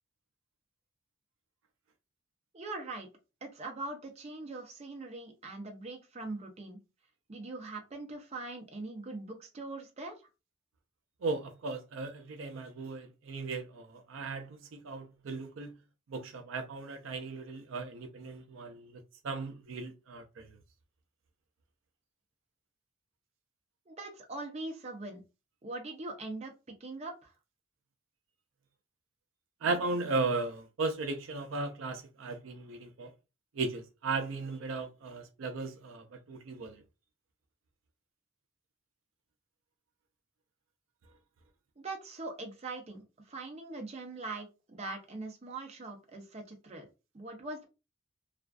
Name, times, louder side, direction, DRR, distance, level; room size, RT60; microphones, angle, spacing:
voice 1, 2.5-3.1 3.4-6.8 7.3-10.2 23.9-25.2 25.6-26.5 26.8-27.3 41.8-46.9 47.1-47.6, right 2 dB, 35° right, 0.6 m, -42 dB
voice 2, 11.2-15.7 16.1-20.5 29.6-33.1 33.5-36.8, right 3 dB, 80° right, 0.4 m, -36 dB
2.5 x 2.3 x 2.2 m
head